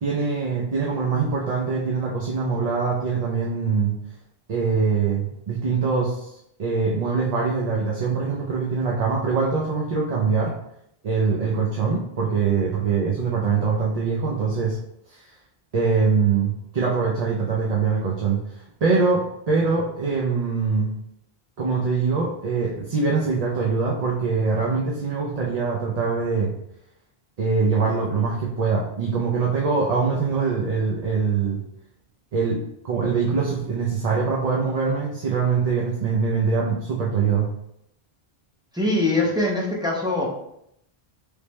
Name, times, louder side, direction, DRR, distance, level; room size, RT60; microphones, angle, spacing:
voice 1, 0.0-4.0 4.5-10.5 11.0-14.8 15.1-15.2 15.7-20.9 21.6-26.6 27.4-31.6 32.3-37.5, right 5 dB, 50° right, -3 dB, 0.6 m, -23 dB
voice 2, 38.7-40.3, left 2 dB, 5° right, -4 dB, 0.6 m, -22 dB
3.3 x 3.2 x 3.0 m, 0.77 s
omnidirectional pair, 1.0 m